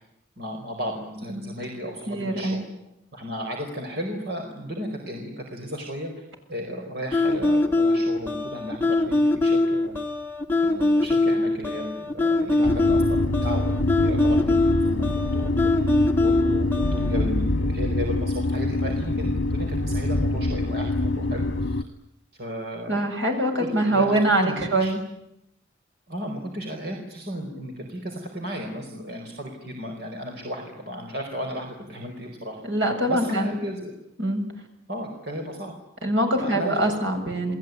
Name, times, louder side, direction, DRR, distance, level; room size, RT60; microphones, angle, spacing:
voice 1, 0.4-2.6 3.1-6.1 6.5-9.9 10.6-13.7 14.0-15.9 16.2-21.8 22.3-23.1 23.5-24.9 26.1-32.6 33.1-33.9 34.9-35.7 36.4-36.8, equal, 55° right, 2 dB, 4.8 m, -34 dB
voice 2, 2.1-2.7 22.9-25.0 32.6-33.5 34.2-34.4 36.0-37.6, right 1 dB, 70° right, 4 dB, 7.2 m, -24 dB
sound 1, 7.1-17.2, left 2 dB, 10° left, 2.7 m, -22 dB
sound 2, 12.6-21.8, left 2 dB, 75° left, 1.4 m, -25 dB
30.0 x 20.5 x 9.6 m, 0.83 s
head